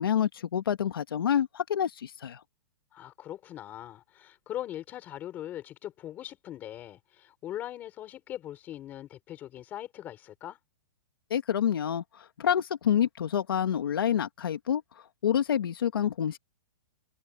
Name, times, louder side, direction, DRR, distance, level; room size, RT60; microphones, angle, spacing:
voice 1, 0.0-2.4 11.3-14.8 15.2-16.4, left 9 dB, 70° left, 2.1 m, -27 dB
voice 2, 2.9-10.6, left 12 dB, 15° left, 4.3 m, -41 dB
hypercardioid pair, 180°, 12 cm